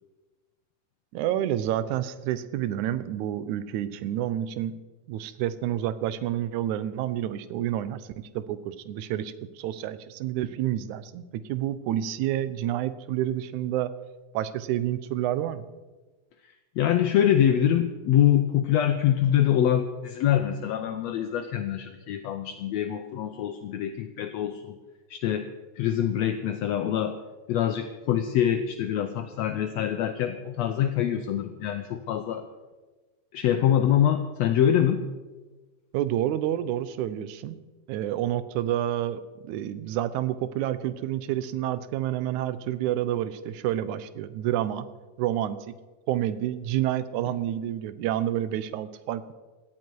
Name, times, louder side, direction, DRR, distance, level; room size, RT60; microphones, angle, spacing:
voice 1, 1.1-4.8 5.1-13.9 14.3-15.7 35.9-37.6 37.9-44.9 45.2-45.8 46.1-49.3, right 12 dB, 75° right, 14 dB, 2.0 m, -29 dB
voice 2, 16.8-24.8 25.1-25.5 25.8-27.2 27.5-32.5 33.3-35.0, left 10 dB, 75° left, 7 dB, 1.6 m, -24 dB
17.5 x 12.5 x 4.6 m, 1.2 s
omnidirectional pair, 3.7 m